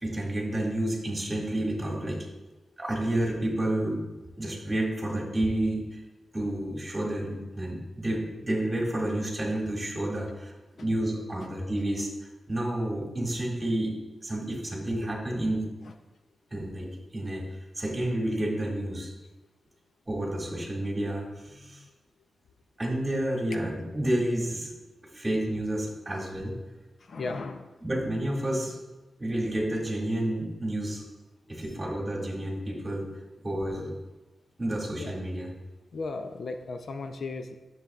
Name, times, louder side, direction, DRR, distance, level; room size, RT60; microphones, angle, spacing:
voice 1, 0.0-2.3 2.8-4.0 4.4-6.0 6.3-12.1 12.5-14.0 14.2-15.7 16.5-17.4 17.8-19.1 20.1-21.2 21.5-21.8 22.8-24.7 25.1-26.6 27.8-28.8 29.2-31.0 31.5-33.1 33.4-34.0 34.6-35.5, right 1 dB, 20° right, -2 dB, 1.8 m, -30 dB
voice 2, 21.5-21.9 27.0-27.7 35.0-35.2 35.9-37.6, left 3 dB, 60° left, 7 dB, 0.5 m, -36 dB
9.9 x 6.8 x 2.3 m, 1.1 s
wide cardioid pair, 110°, 0 cm